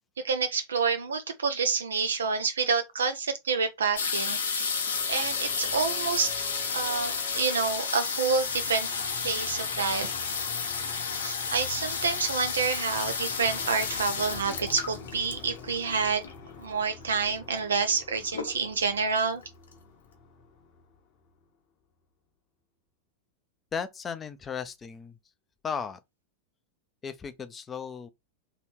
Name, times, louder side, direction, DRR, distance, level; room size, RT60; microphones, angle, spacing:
voice 1, 0.2-4.8 5.1-6.3 6.7-8.9 9.2-10.1 11.2-16.3 16.6-19.4, right 5 dB, 70° right, 0.5 m, -28 dB
sound 1, 4.0-16.5 17.3-17.4 17.6-18.0 18.3-18.9 19.4-19.5 19.7-19.8, left 5 dB, 65° left, 0.9 m, -32 dB
sound 2, 4.6-21.4, left 4 dB, 40° left, 0.9 m, -47 dB
voice 2, 23.7-25.2 25.6-26.0 27.0-28.1, left 6 dB, 20° left, 0.5 m, -35 dB
3.2 x 3.0 x 4.3 m
figure-of-eight pair, 90°, 0 cm